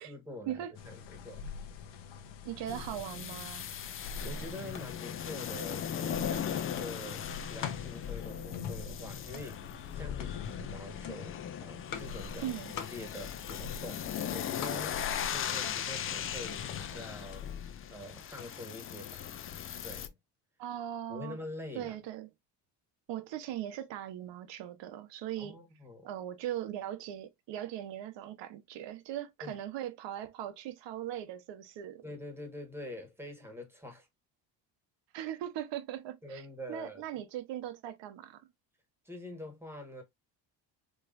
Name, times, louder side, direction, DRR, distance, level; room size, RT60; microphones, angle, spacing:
voice 1, 0.0-1.5 4.2-17.6 17.9-19.3 19.8-20.1 21.1-22.0 25.4-26.1 29.4-29.5 32.0-34.1 36.2-37.1 39.0-40.0, left 1 dB, 5° right, 1.3 m, -45 dB
sound 1, 0.7-17.0, left 5 dB, 75° left, 1.0 m, -45 dB
voice 2, 2.4-3.7 12.4-12.7 20.6-21.4 21.7-22.3 23.1-25.6 26.0-32.0 35.1-38.4, right 11 dB, 70° right, 1.0 m, -39 dB
sound 2, 2.7-20.1, left 9 dB, 30° left, 0.4 m, -38 dB
sound 3, 7.6-19.8, left 8 dB, 45° left, 1.0 m, -49 dB
4.8 x 3.1 x 2.5 m
cardioid pair, 150°, 44 cm